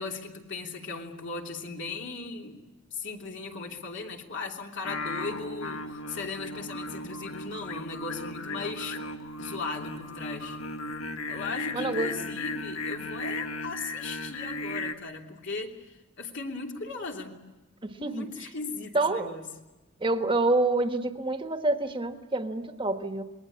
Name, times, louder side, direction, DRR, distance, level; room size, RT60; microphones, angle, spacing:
voice 1, 0.0-2.6 2.9-9.0 9.4-10.6 11.3-17.4 18.0-19.5, left 4 dB, 60° left, 1 dB, 3.1 m, -37 dB
Singing, 4.8-14.9, left 2 dB, 80° left, 1.7 m, -36 dB
voice 2, 11.7-12.1 17.8-18.3 18.9-19.4 20.0-23.2, right 2 dB, 25° right, 7 dB, 1.4 m, -27 dB
27.0 x 21.5 x 8.6 m, 1.1 s
head